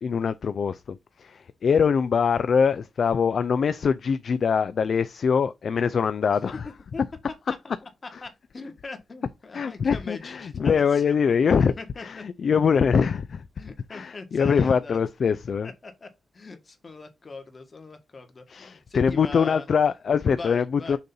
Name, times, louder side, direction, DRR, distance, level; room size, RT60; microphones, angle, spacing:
voice 1, 0.0-6.6 9.5-11.7 12.0-13.5 13.9-15.7 18.5-21.0, left 6 dB, 65° left, 0.4 m, -23 dB
voice 2, 7.8-11.2 11.4-12.2 13.6-15.0 15.6-19.7 20.3-21.0, left 3 dB, 40° left, 1.5 m, -41 dB
6.5 x 2.8 x 5.3 m
cardioid pair, 90°, 0 cm